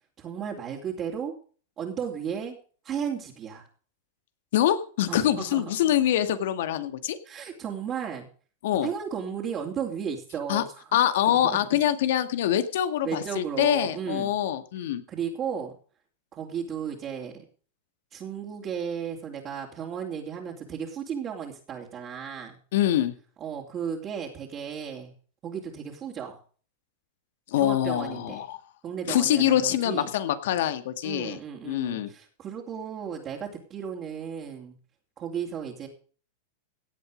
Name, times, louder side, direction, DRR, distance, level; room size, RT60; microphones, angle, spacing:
voice 1, 0.2-1.3 1.8-2.6 2.8-3.7 5.1-5.8 7.2-8.3 8.8-11.0 11.3-11.6 13.0-14.3 15.1-15.7 16.3-17.4 18.1-22.6 23.4-25.1 25.4-26.4 27.6-28.4 28.8-30.1 31.0-34.7 35.2-35.9, right 7 dB, 30° right, -4 dB, 3.1 m, -34 dB
voice 2, 4.5-7.2 8.6-8.9 10.5-10.6 10.9-15.0 22.7-23.1 27.5-28.6 29.1-31.4 31.6-32.1, left 11 dB, 70° left, 11 dB, 1.9 m, -25 dB
17.0 x 8.4 x 5.2 m, 0.41 s
hypercardioid pair, 130°, 0 cm